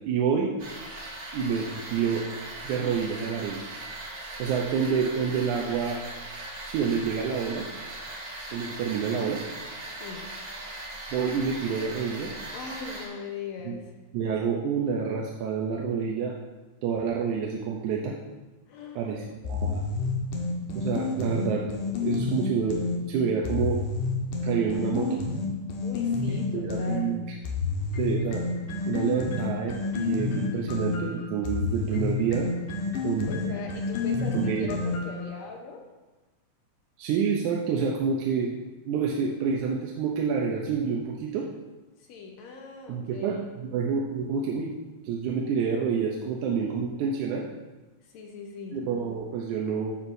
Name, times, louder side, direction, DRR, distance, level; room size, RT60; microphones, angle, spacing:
voice 1, 0.1-0.5 1.3-2.3 2.6-3.6 4.4-6.0 6.7-7.7 8.5-9.4 11.1-12.4 13.7-13.8 14.1-16.4 16.8-18.2 19.0-19.8 20.7-21.6 22.0-22.8 23.1-23.8 24.4-25.2 26.3-27.2 28.0-28.4 28.9-32.5 33.0-33.3 34.3-34.7 37.0-38.5 38.9-41.5 42.9-44.7 45.0-47.5 48.7-50.0, right 6 dB, 80° right, -2 dB, 2.1 m, -28 dB
sound 1, 0.6-13.1, right 2 dB, 45° right, 2.3 m, -39 dB
voice 2, 10.0-10.3 12.5-13.9 18.7-19.2 25.8-27.1 33.3-35.8 42.0-43.5 48.0-48.8, left 4 dB, 70° left, 2 dB, 2.1 m, -40 dB
sound 2, 19.4-23.0 23.4-27.0 27.4-35.2, left 4 dB, 85° left, 2.7 m, -29 dB
12.5 x 7.3 x 2.6 m, 1.2 s
omnidirectional pair, 3.5 m